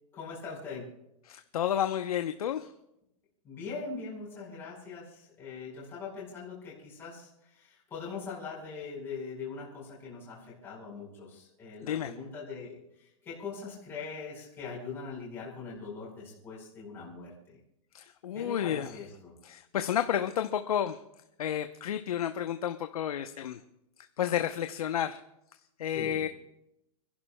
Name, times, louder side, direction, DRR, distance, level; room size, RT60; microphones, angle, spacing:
voice 1, 0.1-0.9 3.4-17.6 18.3-19.3 25.9-26.2, left 4 dB, 15° left, -6 dB, 4.7 m, -42 dB
voice 2, 1.3-2.7 11.8-12.1 17.9-19.0 19.4-21.0 21.4-23.6 24.2-25.2 25.8-26.3, left 10 dB, 90° left, 8 dB, 0.8 m, -31 dB
30.0 x 11.5 x 2.2 m, 0.84 s
hypercardioid pair, 175°, 18 cm